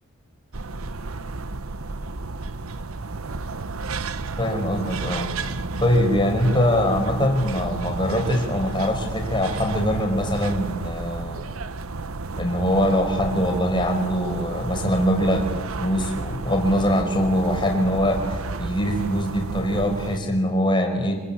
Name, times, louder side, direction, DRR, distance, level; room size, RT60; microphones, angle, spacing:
sound 1, 0.5-20.2, right 3 dB, 85° right, 1.0 m, -32 dB
voice 1, 4.4-5.3 5.8-11.5 12.4-21.2, equal, 20° left, 3 dB, 5.1 m, -23 dB
26.5 x 25.0 x 8.7 m, 1.3 s
head